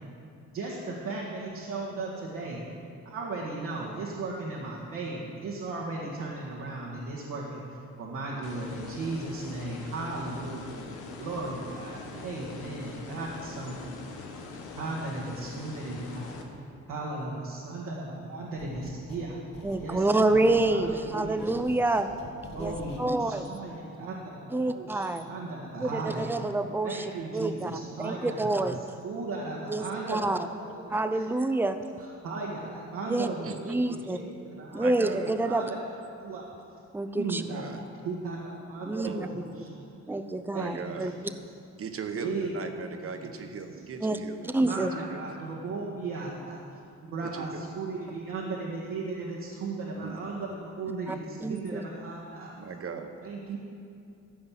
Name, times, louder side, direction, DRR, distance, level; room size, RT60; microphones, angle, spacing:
voice 1, 0.5-2.6 3.1-7.6 8.0-10.8 11.2-14.1 14.8-16.3 16.9-19.4 19.8-21.9 22.5-26.3 26.8-28.8 29.0-31.3 32.0-35.8 36.2-36.4 37.2-37.7 38.0-39.8 40.5-41.2 42.2-43.5 44.6-52.5 53.2-53.6, right 3 dB, 85° right, -4 dB, 1.7 m, -36 dB
sound 1, 8.4-16.4, left 4 dB, 90° left, 1.3 m, -43 dB
sound 2, 18.6-19.3 19.5-23.1, left 1 dB, 60° left, 2.9 m, -46 dB
voice 2, 19.6-22.1 22.6-22.7 23.0-23.5 24.5-25.3 25.8-27.0 27.3-27.7 28.0-28.8 29.7-30.4 30.9-31.8 33.1-33.3 33.7-34.2 34.7-35.7 36.9-37.4 38.9-39.3 40.1-41.1 44.0-44.2 44.4-44.9 51.1-51.2 51.4-51.8, right 2 dB, 5° right, 9 dB, 0.6 m, -27 dB
voice 3, 33.4-33.7 34.7-35.3 37.4-37.8 39.0-39.2 40.6-41.1 41.8-44.5 44.8-45.4 47.2-47.7 50.0-50.2 52.6-53.1, right 5 dB, 50° right, 6 dB, 1.1 m, -39 dB
14.0 x 5.4 x 7.4 m, 2.5 s
cardioid pair, 90°, 30 cm